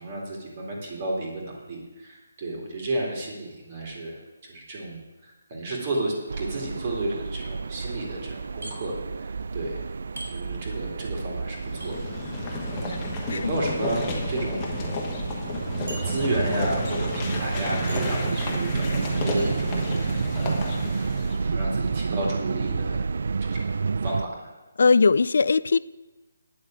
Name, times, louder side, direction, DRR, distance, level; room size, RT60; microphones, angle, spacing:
voice 1, 0.0-4.2 4.5-9.3 9.5-9.8 10.2-12.0 12.3-14.8 16.0-20.8 21.4-23.1 23.4-23.7 24.0-24.5, right 1 dB, 30° right, -2 dB, 2.4 m, -32 dB
sound 1, 5.8-6.4 8.6-8.8 10.2-10.3 11.8-11.9 13.3-13.5 14.3-14.4 14.7-14.8 15.9-16.5 16.8-17.2 17.9-18.2 19.4-19.6, right 2 dB, 80° right, 3.6 m, -42 dB
sound 2, 6.3-24.2, right 4 dB, 60° right, 0.3 m, -30 dB
sound 3, 11.5-21.5, left 3 dB, 15° left, 1.5 m, -33 dB
voice 2, 24.8-25.8, left 4 dB, 60° left, 19 dB, 0.3 m, -19 dB
9.5 x 6.4 x 8.7 m, 1.1 s
hypercardioid pair, 170°, 0 cm